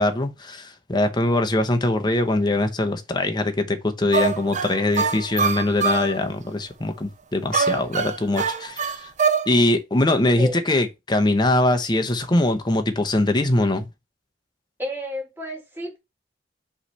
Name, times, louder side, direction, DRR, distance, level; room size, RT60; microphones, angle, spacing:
voice 1, 0.0-9.1 9.5-13.9, left 2 dB, 25° left, 0.8 m, -22 dB
sound 1, 4.1-6.1 7.5-9.5, right 5 dB, 40° right, 0.5 m, -23 dB
voice 2, 14.8-16.0, left 1 dB, 10° right, 2.0 m, -31 dB
5.6 x 3.3 x 5.5 m
head